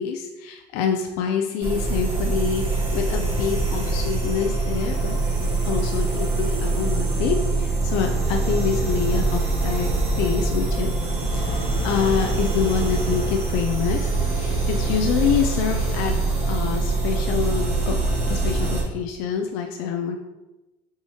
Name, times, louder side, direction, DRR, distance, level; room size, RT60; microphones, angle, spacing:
voice 1, 0.0-9.9 10.2-14.1 14.4-16.2 16.5-18.0 18.3-20.2, left 7 dB, 85° left, 4 dB, 0.4 m, -26 dB
sound 1, 1.6-18.8, right 3 dB, 45° right, 1.3 m, -24 dB
4.8 x 3.5 x 2.7 m, 1.0 s
cardioid pair, 150°, 15 cm